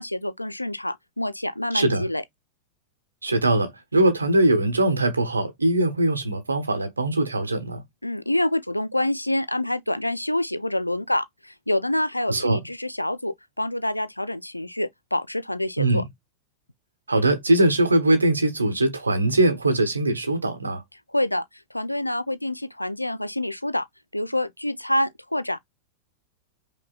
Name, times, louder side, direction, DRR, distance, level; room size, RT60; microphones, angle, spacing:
voice 1, 0.0-2.2 8.0-16.0 21.1-23.9 24.1-25.6, left 1 dB, 85° left, 0.3 m, -27 dB
voice 2, 1.7-2.1 3.2-7.8 12.3-12.6 15.8-16.1 17.1-20.8, right 2 dB, 80° right, 0.9 m, -21 dB
5.2 x 2.1 x 2.3 m
figure-of-eight pair, 90°, 0 cm